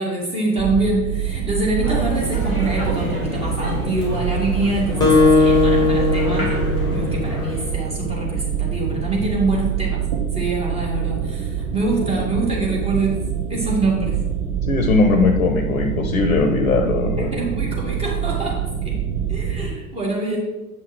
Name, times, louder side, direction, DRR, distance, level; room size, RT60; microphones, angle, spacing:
voice 1, 0.0-6.5 6.9-10.0 10.3-14.2 17.3-19.0 19.3-20.4, right 2 dB, 15° right, -3 dB, 1.8 m, -25 dB
sound 1, 0.6-19.7, right 8 dB, 50° right, 0.8 m, -26 dB
sound 2, 1.8-7.7, right 1 dB, 80° right, 2.2 m, -27 dB
Acoustic guitar, 5.0-7.8, left 3 dB, 10° left, 1.3 m, -18 dB
voice 2, 14.6-17.3, left 3 dB, 65° left, 5 dB, 0.8 m, -19 dB
7.3 x 5.6 x 3.1 m, 1.1 s
figure-of-eight pair, 85°, 43 cm